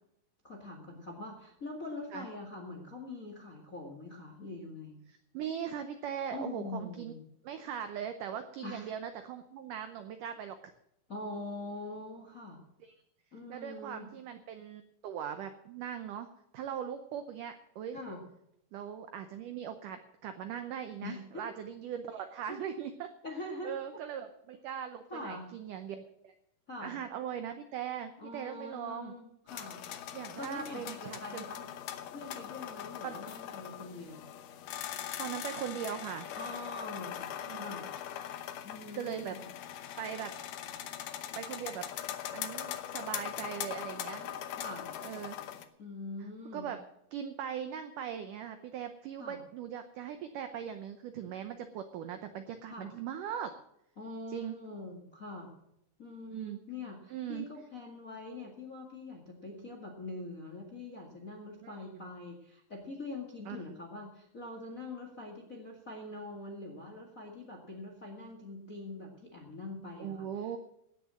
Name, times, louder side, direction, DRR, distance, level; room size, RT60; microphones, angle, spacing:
voice 1, 0.4-5.0 6.3-7.2 8.6-8.9 11.1-12.6 13.3-14.1 17.9-18.2 21.0-21.4 22.5-22.7 23.2-23.7 25.1-25.5 26.7-26.9 28.2-29.8 30.4-31.6 32.1-34.3 36.4-37.3 37.5-37.8 38.6-39.5 44.5-44.9 45.8-46.7 49.2-49.4 52.7-52.9 54.0-55.5 56.0-70.3, left 2 dB, 35° left, 1 dB, 1.3 m, -43 dB
voice 2, 5.1-7.1 7.4-10.6 12.8-12.9 13.5-16.3 16.5-18.0 18.7-23.1 23.6-26.3 26.8-29.1 30.1-31.4 33.0-33.2 35.2-36.3 37.4-37.7 38.9-39.4 40.0-40.3 41.4-41.9 42.3-44.3 45.0-45.4 46.5-46.8 47.1-53.5 54.3-54.6 56.3-56.6 57.1-57.5 61.6-62.0 63.5-63.6 70.0-70.6, right 9 dB, 80° right, 8 dB, 1.9 m, -40 dB
sound 1, 29.5-45.7, left 11 dB, 70° left, 2.1 m, -41 dB
17.0 x 6.6 x 7.5 m, 0.78 s
omnidirectional pair, 4.7 m